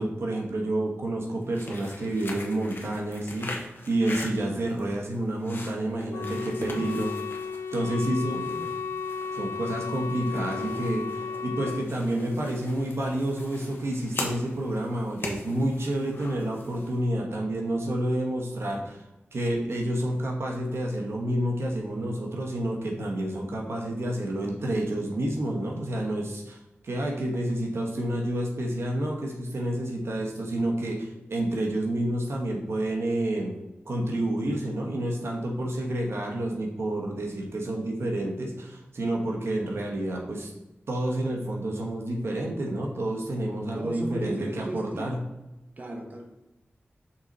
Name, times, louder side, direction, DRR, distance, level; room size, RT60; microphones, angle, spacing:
voice 1, 0.0-3.6 3.9-7.1 7.7-8.6 9.3-19.0 19.3-33.5 33.9-40.5 40.9-45.2, right 1 dB, 80° right, 0 dB, 1.2 m, -29 dB
sound 1, 1.4-17.0, left 2 dB, 55° left, 1.1 m, -42 dB
Wind instrument woodwind instrument, 6.1-11.9, left 5 dB, 90° left, 0.3 m, -34 dB
voice 2, 6.4-6.9 7.9-8.7 43.7-45.1 45.8-46.2, right 1 dB, 40° right, 1 dB, 1.0 m, -37 dB
5.9 x 4.0 x 4.2 m, 0.95 s
wide cardioid pair, 95°, 4 cm